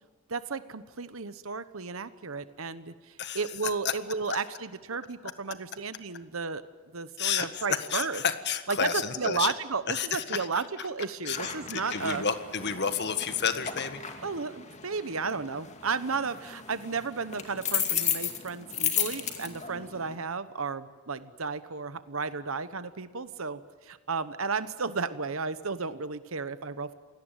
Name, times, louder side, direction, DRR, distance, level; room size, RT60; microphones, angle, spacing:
voice 1, 0.3-2.9 3.3-6.6 6.9-8.2 8.7-12.2 14.2-23.6 23.9-26.9, right 4 dB, 70° right, 13 dB, 1.1 m, -33 dB
voice 2, 7.2-9.5 9.9-10.5 11.2-14.0, left 7 dB, 50° left, 10 dB, 1.6 m, -30 dB
sound 1, 11.3-20.2, left 8 dB, 35° left, 2.4 m, -35 dB
28.0 x 18.0 x 9.1 m, 1.5 s
head